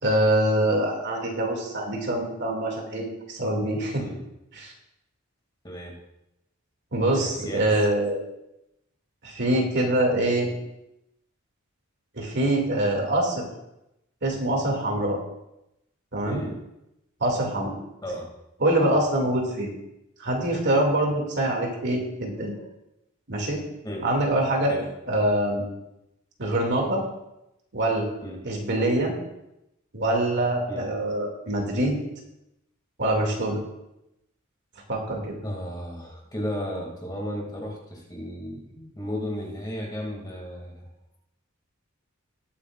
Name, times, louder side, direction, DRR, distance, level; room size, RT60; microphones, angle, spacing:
voice 1, 0.0-4.0 4.5-4.7 6.9-8.2 9.2-10.5 12.1-13.5 14.2-15.2 16.1-16.4 17.2-17.7 18.6-19.7 20.2-22.6 23.3-23.6 24.0-24.7 25.1-25.6 26.4-27.0 27.7-28.1 28.4-29.1 29.9-32.0 33.0-33.6 34.9-35.4, right 1 dB, 55° right, 0 dB, 2.4 m, -24 dB
voice 2, 5.6-6.0 7.1-7.7 16.3-16.6 18.0-18.3 22.4-22.7 23.8-24.1 24.7-24.9 28.2-28.4 30.7-30.9 35.4-40.9, equal, 20° left, 0 dB, 2.4 m, -34 dB
19.5 x 8.4 x 2.5 m, 0.87 s
head